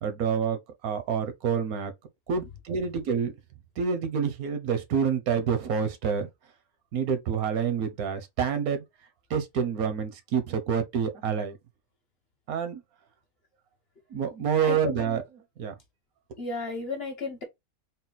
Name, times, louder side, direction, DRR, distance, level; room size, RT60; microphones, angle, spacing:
voice 1, 0.0-0.6 0.8-1.9 2.3-3.3 3.8-6.3 6.9-8.8 9.3-11.6 12.5-12.8 14.1-15.2 15.6-15.7, right 7 dB, 80° right, 1.2 m, -27 dB
voice 2, 14.6-15.1 16.4-17.4, left 4 dB, 45° left, 1.3 m, -33 dB
4.1 x 2.2 x 3.9 m
omnidirectional pair, 1.5 m